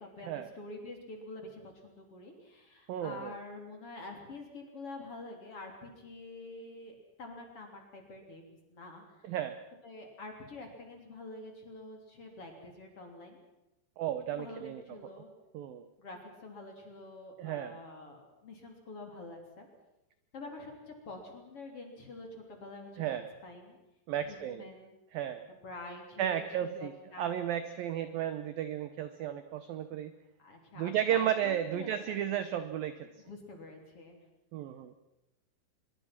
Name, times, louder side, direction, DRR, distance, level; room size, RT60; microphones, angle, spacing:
voice 1, 0.0-9.3 9.8-13.4 14.3-15.3 16.0-19.7 20.3-23.8 24.2-25.0 25.6-27.4 30.4-32.3 33.2-34.2, left 2 dB, 35° left, 3 dB, 3.7 m, -47 dB
voice 2, 2.9-3.4 9.3-9.6 14.0-14.8 15.1-15.2 15.5-15.8 17.4-17.8 23.0-23.3 24.1-24.7 25.1-25.5 26.2-26.9 27.2-30.1 30.8-33.1 34.5-34.9, right 10 dB, 75° right, 11 dB, 2.1 m, -33 dB
25.0 x 23.0 x 6.0 m, 0.94 s
omnidirectional pair, 5.4 m